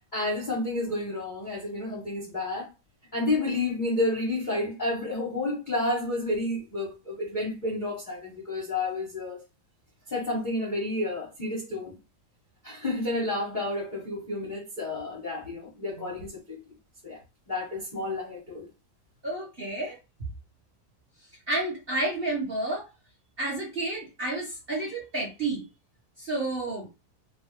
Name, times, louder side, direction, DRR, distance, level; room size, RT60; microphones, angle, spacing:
voice 1, 0.0-2.7 3.1-9.4 10.1-12.0 12.6-16.7 17.0-17.2 17.5-18.7, left 2 dB, 40° left, 0.7 m, -30 dB
voice 2, 19.2-20.0 21.5-22.9 23.4-25.7 26.2-26.9, right 2 dB, 40° right, 1.0 m, -30 dB
3.2 x 2.5 x 2.9 m
omnidirectional pair, 2.1 m